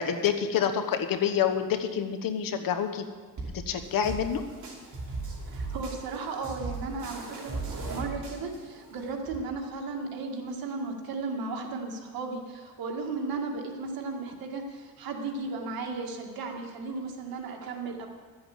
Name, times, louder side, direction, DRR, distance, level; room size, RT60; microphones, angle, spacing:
voice 1, 0.0-3.0 3.7-4.4, left 8 dB, 75° left, 8 dB, 1.2 m, -27 dB
sound 1, 3.4-9.4, right 3 dB, 60° right, 2.8 m, -38 dB
voice 2, 5.4-18.1, right 3 dB, 90° right, 2 dB, 1.9 m, -35 dB
12.5 x 7.8 x 7.7 m, 1.5 s
cardioid pair, 100°, 35 cm